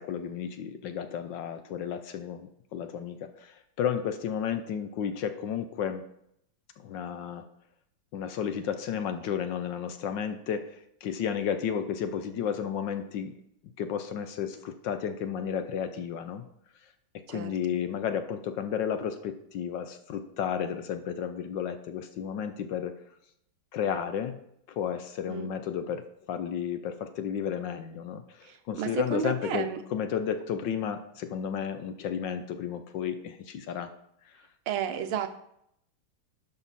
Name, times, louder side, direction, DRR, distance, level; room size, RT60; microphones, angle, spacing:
voice 1, 0.0-6.0 6.8-7.5 8.1-13.4 13.8-16.4 16.8-16.9 17.3-22.9 23.7-24.4 24.7-33.9 34.2-34.4, left 8 dB, 70° left, 9 dB, 1.2 m, -32 dB
voice 2, 28.4-29.8 34.7-35.3, right 9 dB, 80° right, 9 dB, 1.6 m, -32 dB
11.0 x 5.7 x 4.2 m, 0.73 s
omnidirectional pair, 2.3 m